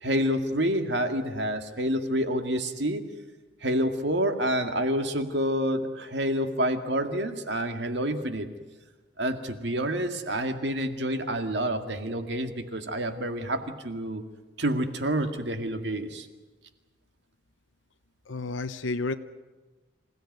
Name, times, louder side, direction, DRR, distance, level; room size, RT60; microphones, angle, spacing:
voice 1, 0.0-3.1 3.6-8.5 9.2-14.2 14.6-16.3, equal, 65° right, 7 dB, 2.0 m, -28 dB
voice 2, 18.3-19.1, left 3 dB, 90° left, 8 dB, 0.8 m, -31 dB
27.0 x 16.5 x 9.4 m, 1.2 s
head